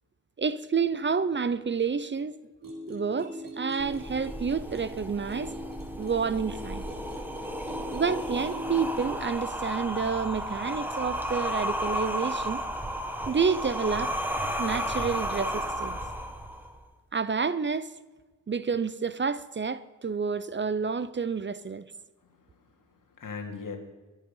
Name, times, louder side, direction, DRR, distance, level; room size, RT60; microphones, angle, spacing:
voice 1, 0.4-2.4 2.9-5.5 6.0-6.8 7.9-12.6 13.3-14.2 14.6-16.0 17.1-17.9 18.5-21.9, right 5 dB, 35° right, 0.6 m, -29 dB
sound 1, 2.6-9.2, left 1 dB, 80° right, 4.1 m, -41 dB
sound 2, 3.8-16.8, equal, 5° right, 1.5 m, -33 dB
voice 2, 21.9-23.8, left 5 dB, 70° left, 2.5 m, -42 dB
23.0 x 8.3 x 5.5 m
wide cardioid pair, 115°, 33 cm